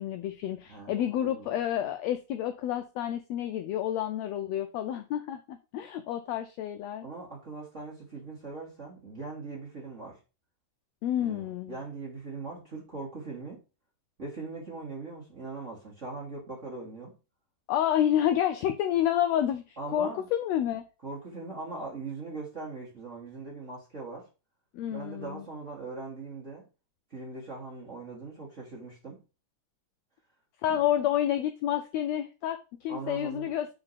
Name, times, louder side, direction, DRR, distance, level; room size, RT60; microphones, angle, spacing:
voice 1, 0.0-7.1 11.0-11.8 17.7-20.8 24.7-25.4 30.6-33.7, left 11 dB, 90° left, 8 dB, 1.5 m, -29 dB
voice 2, 0.7-1.6 7.0-10.2 11.2-13.6 14.2-17.1 19.8-20.3 21.0-24.3 24.9-26.6 27.1-29.2 30.7-30.8 32.9-33.5, right 3 dB, 35° right, -4 dB, 1.2 m, -40 dB
4.4 x 3.9 x 5.6 m, 0.31 s
omnidirectional pair, 3.5 m